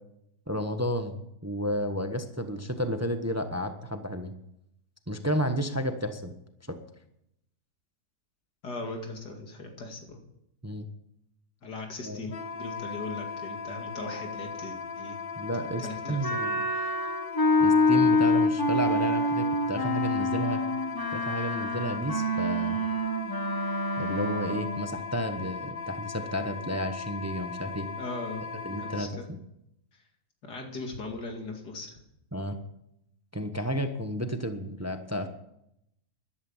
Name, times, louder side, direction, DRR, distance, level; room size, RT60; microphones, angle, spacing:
voice 1, 0.5-4.3 5.1-6.3 6.7-6.8 10.6-10.8 12.1-12.2 15.4-16.7 17.6-20.6 21.1-22.8 24.0-27.9 28.6-29.4 32.3-32.6 33.3-35.3, equal, 10° right, 7 dB, 0.9 m, -32 dB
voice 2, 8.6-10.2 11.6-15.2 15.8-16.4 16.7-17.1 28.0-29.2 30.4-32.0, left 3 dB, 85° left, 3 dB, 3.0 m, -39 dB
Wind instrument woodwind instrument, 12.3-29.1, left 5 dB, 45° left, 0.8 m, -38 dB
Wind instrument woodwind instrument 2, 16.2-24.9, left 2 dB, 15° left, 1.2 m, -26 dB
13.5 x 12.0 x 7.3 m, 0.80 s
omnidirectional pair, 1.7 m